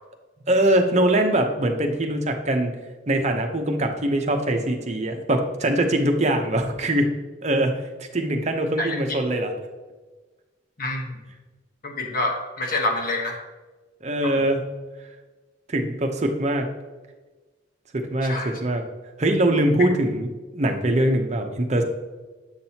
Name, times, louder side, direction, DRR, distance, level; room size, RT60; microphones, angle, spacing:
voice 1, 0.5-2.7 3.1-7.1 7.4-7.8 8.1-9.5 14.0-14.6 15.7-16.7 17.9-18.8 19.2-21.8, right 1 dB, 40° right, 4 dB, 0.8 m, -22 dB
voice 2, 10.8-11.1 11.8-13.4 14.2-14.5 18.2-18.6, left 2 dB, 50° left, 2 dB, 1.2 m, -27 dB
7.9 x 6.1 x 2.8 m, 1.3 s
head